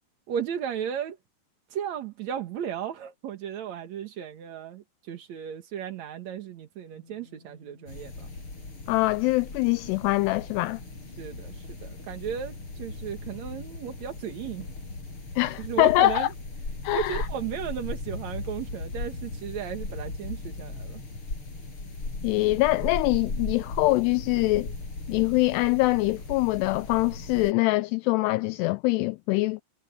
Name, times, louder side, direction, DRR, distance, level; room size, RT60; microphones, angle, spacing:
voice 1, 0.3-1.2 1.7-8.3 11.2-14.7 15.6-16.3 16.9-21.0, right 8 dB, 60° right, 2.0 m, -35 dB
sound 1, 6.9-22.9, left 4 dB, 40° right, 4.1 m, -61 dB
sound 2, 7.9-27.5, left 3 dB, 30° left, 6.9 m, -37 dB
voice 2, 8.9-10.8 15.4-16.3 16.8-17.3 22.2-24.7 25.1-29.6, left 20 dB, 85° left, 2.4 m, -24 dB
omnidirectional pair, 5.1 m